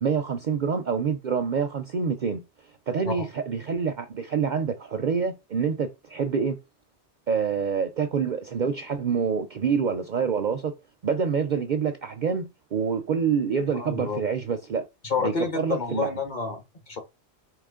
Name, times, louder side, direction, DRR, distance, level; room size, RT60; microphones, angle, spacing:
voice 1, 0.0-2.4 2.9-6.6 7.3-10.7 11.0-14.9 15.2-16.1, right 6 dB, 55° right, 0.5 m, -26 dB
voice 2, 13.7-14.3 15.0-17.0, left 4 dB, 40° left, 1.1 m, -29 dB
4.8 x 3.0 x 3.7 m
omnidirectional pair, 1.2 m